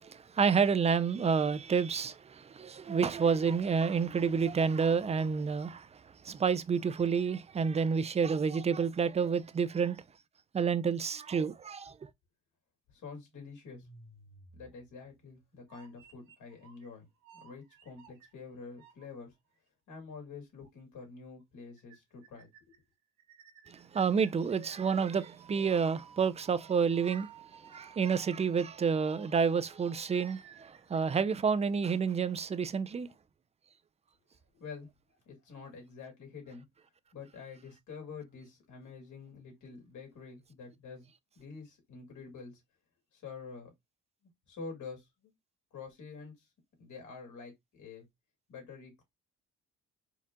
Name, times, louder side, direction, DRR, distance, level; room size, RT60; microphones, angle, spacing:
voice 1, 0.0-5.9 6.2-10.0 10.5-11.9 23.7-27.3 27.7-33.1, right 6 dB, 20° right, 0.4 m, -29 dB
voice 2, 12.9-13.9 14.5-17.1 17.4-19.3 19.9-22.5 34.5-34.9 35.3-36.6 37.1-41.1 41.4-42.6 43.1-43.7 44.5-45.3 45.7-46.5 46.8-48.1 48.5-49.0, left 5 dB, 75° left, 2.3 m, -47 dB
sound 1, 13.6-15.2 15.7-16.9 17.2-19.0 19.5-19.6 20.6-20.7 21.0-21.1 21.4-21.5 21.8-22.0 22.2-22.8 23.2-31.8, right 6 dB, 85° right, 1.6 m, -57 dB
4.5 x 2.3 x 3.6 m
cardioid pair, 90°, 30 cm